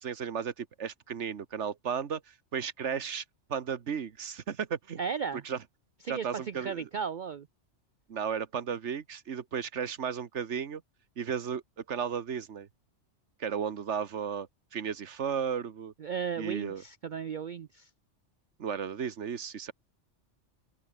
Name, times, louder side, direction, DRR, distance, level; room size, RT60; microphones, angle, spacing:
voice 1, 0.0-3.2 3.5-5.0 5.4-5.6 6.1-6.9 8.1-10.8 11.2-11.6 11.9-12.7 13.4-15.9 16.4-16.8 18.6-19.7, right 7 dB, 70° right, 1.5 m, -34 dB
voice 2, 5.0-5.4 6.0-7.5 16.0-17.9, right 6 dB, 50° right, 0.6 m, -35 dB
open air
omnidirectional pair, 1.2 m